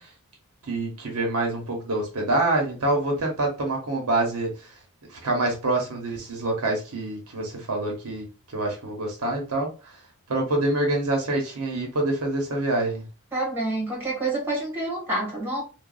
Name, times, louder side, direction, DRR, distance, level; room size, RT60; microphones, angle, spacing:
voice 1, 0.7-4.5 5.2-8.3 8.5-9.7 10.3-13.0, right 2 dB, 80° right, 0.9 m, -26 dB
voice 2, 13.3-15.6, right 2 dB, 10° right, 1.3 m, -28 dB
3.0 x 2.2 x 2.3 m
head